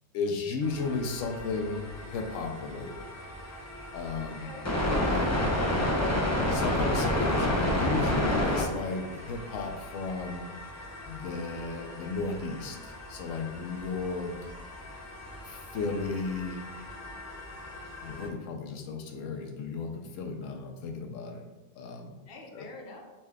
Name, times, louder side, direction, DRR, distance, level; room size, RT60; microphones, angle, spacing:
voice 1, 0.1-3.1 3.9-4.5 4.9-5.3 6.5-10.5 11.1-14.3 15.4-16.7 18.0-21.4 21.8-22.2 22.5-22.7, left 4 dB, 90° left, 3 dB, 1.0 m, -34 dB
sound 1, 0.6-18.3, left 1 dB, 25° left, 0.3 m, -32 dB
voice 2, 4.4-4.7 5.1-6.2 22.3-23.0, left 3 dB, 55° left, 1 dB, 0.9 m, -46 dB
5.6 x 2.2 x 3.4 m, 1.1 s
omnidirectional pair, 1.3 m